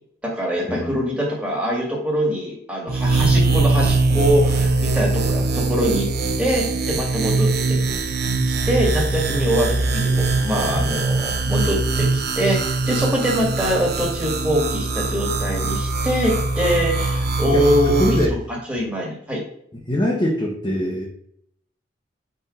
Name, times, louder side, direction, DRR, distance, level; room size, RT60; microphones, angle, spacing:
voice 1, 0.2-6.1 6.4-7.8 8.0-8.2 8.7-18.2 18.7-19.4, equal, 5° right, -3 dB, 2.0 m, -23 dB
sound 1, 2.9-18.3, right 3 dB, 60° right, 0.9 m, -22 dB
voice 2, 17.5-18.3 19.9-21.1, left 1 dB, 25° left, -2 dB, 1.1 m, -23 dB
4.8 x 4.7 x 5.0 m, 0.69 s
head